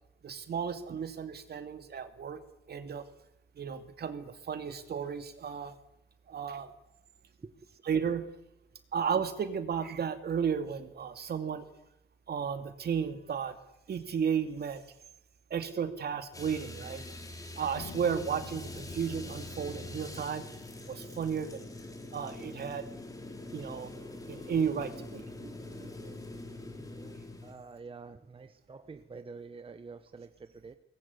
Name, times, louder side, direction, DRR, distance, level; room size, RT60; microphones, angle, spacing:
voice 1, 0.2-2.4 2.7-3.1 3.6-5.7 6.3-6.7 7.8-8.3 8.9-11.7 12.3-13.5 13.9-14.8 15.5-17.0 17.6-20.4 20.8-21.7 22.1-22.9 23.5-23.9 24.3-26.4, right 7 dB, 50° right, 9 dB, 2.5 m, -34 dB
sound 1, 16.3-27.5, left 2 dB, 15° left, 3.9 m, -44 dB
sound 2, 17.8-21.4, left 7 dB, 80° left, 2.4 m, -50 dB
voice 2, 26.7-27.2 27.4-30.8, right 4 dB, 25° right, 9 dB, 1.2 m, -48 dB
23.0 x 20.0 x 9.7 m, 0.88 s
wide cardioid pair, 160°, 20 cm